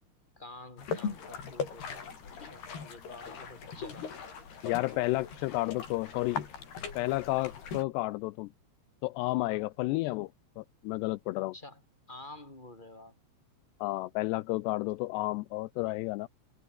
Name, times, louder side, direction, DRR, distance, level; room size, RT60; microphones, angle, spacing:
voice 1, 0.4-4.1 9.4-9.6 11.4-11.8 12.1-13.2, left 2 dB, 10° left, 6.0 m, -49 dB
sound 1, 0.8-7.8, left 6 dB, 60° left, 6.7 m, -40 dB
voice 2, 4.6-6.5 7.0-8.5 9.0-10.3 10.6-11.5 13.8-16.3, left 20 dB, 85° left, 2.5 m, -31 dB
open air
omnidirectional pair, 5.4 m